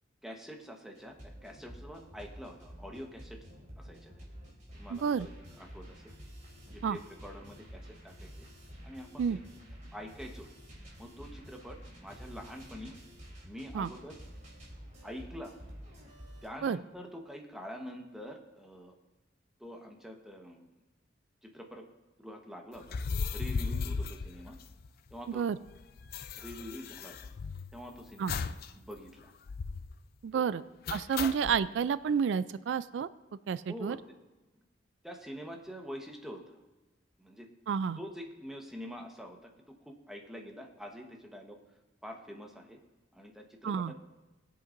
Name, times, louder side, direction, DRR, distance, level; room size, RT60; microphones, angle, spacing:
voice 1, 0.2-3.4 3.8-4.2 4.7-5.3 5.6-6.1 6.7-8.5 8.8-9.4 9.9-10.5 11.0-12.9 13.4-14.2 15.0-15.5 16.4-19.0 19.6-20.7 21.4-21.8 22.2-23.0 23.3-24.6 25.1-25.5 26.3-27.3 27.7-29.3 30.3-30.6 31.2-31.4 33.7-34.0 35.0-36.6 37.2-37.5 38.0-39.5 39.9-41.6 42.0-42.8 43.1-44.0, equal, ahead, 1 dB, 1.1 m, -46 dB
sound 1, 1.0-16.5, equal, 40° right, 3.3 m, -50 dB
voice 2, 4.9-5.3 6.8-7.0 9.2-9.4 13.7-13.9 16.6-16.8 25.3-25.6 28.2-28.3 30.2-30.6 30.9-33.1 33.5-34.0 37.7-38.0 43.6-43.9, right 7 dB, 75° right, 16 dB, 0.3 m, -30 dB
sound 2, 22.8-25.1 25.4-25.5 25.7-27.8 28.3-28.7 29.0-29.1 29.5-29.9 30.9-31.6, left 5 dB, 55° left, 0.4 m, -36 dB
21.0 x 7.9 x 2.6 m, 1.1 s
head